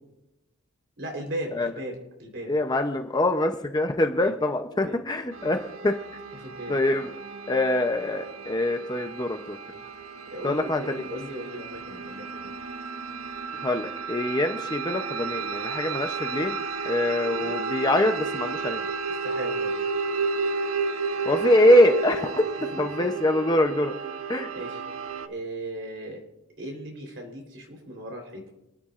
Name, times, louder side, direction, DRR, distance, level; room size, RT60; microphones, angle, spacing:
voice 1, 1.0-2.5 4.0-4.3 4.7-5.0 6.4-6.8 10.3-12.5 17.4-17.5 19.2-19.7 22.7-23.1 24.5-24.8 25.2-26.2 26.6-28.5, right 1 dB, 55° right, 1 dB, 3.7 m, -37 dB
voice 2, 2.5-5.9 6.7-7.1 7.5-9.6 10.4-11.0 13.6-18.8 21.3-22.4 22.8-23.9 24.3-24.5, left 1 dB, 20° left, 5 dB, 0.6 m, -24 dB
sound 1, 5.3-25.3, right 4 dB, 70° right, 0.8 m, -32 dB
26.5 x 10.0 x 2.5 m, 0.90 s
head